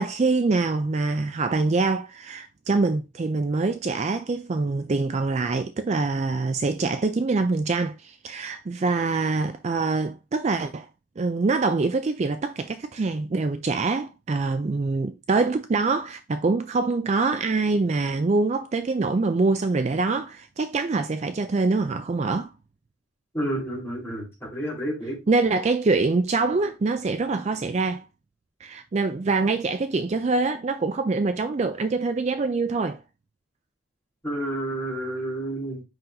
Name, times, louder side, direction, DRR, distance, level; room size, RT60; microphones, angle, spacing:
voice 1, 0.0-10.9 11.2-22.5 25.3-28.1 28.6-33.0, right 3 dB, 35° right, 0.3 m, -24 dB
voice 2, 23.3-25.2 34.2-35.8, right 1 dB, 10° left, 3.6 m, -30 dB
7.8 x 5.6 x 2.6 m
head